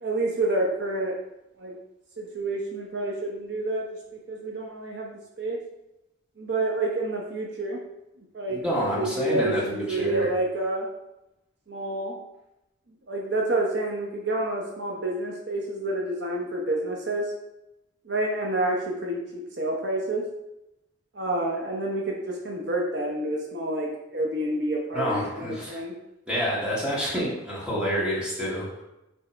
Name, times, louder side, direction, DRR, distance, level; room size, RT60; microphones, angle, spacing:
voice 1, 0.0-1.2 1.6-1.8 2.2-5.6 6.4-7.8 8.3-10.9 11.7-12.2 13.1-17.3 18.1-20.3 21.1-25.9, right 1 dB, 60° right, -1 dB, 0.9 m, -29 dB
voice 2, 8.5-10.3 24.9-25.8 26.3-28.8, equal, 5° right, -6 dB, 1.8 m, -28 dB
6.4 x 3.5 x 4.4 m, 0.91 s
head